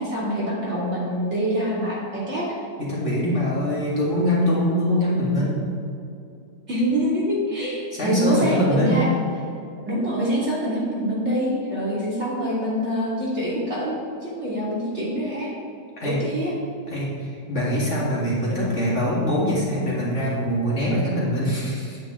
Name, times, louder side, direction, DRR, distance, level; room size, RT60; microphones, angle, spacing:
voice 1, 0.0-2.6 6.7-9.1 9.9-14.0 14.2-15.5 16.0-16.5 18.5-18.7, equal, 40° right, -7 dB, 2.9 m, -25 dB
voice 2, 2.8-5.7 7.9-9.2 16.0-16.2 16.9-22.0, equal, 45° left, -6 dB, 2.3 m, -23 dB
9.8 x 8.9 x 3.7 m, 2.6 s
omnidirectional pair, 1.9 m